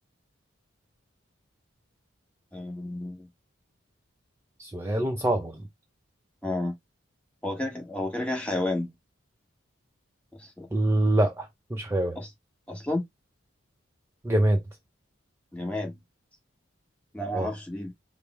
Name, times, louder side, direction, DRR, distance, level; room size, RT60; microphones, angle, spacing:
voice 1, 2.5-3.3 6.4-6.7 7.4-8.9 10.3-10.7 12.1-12.3 12.7-13.0 15.5-16.0 17.1-17.9, left 1 dB, 5° left, 1.2 m, -31 dB
voice 2, 4.6-5.6 10.7-12.2 14.2-14.6 17.3-17.5, right 1 dB, 10° right, 0.5 m, -25 dB
5.1 x 2.0 x 4.2 m
head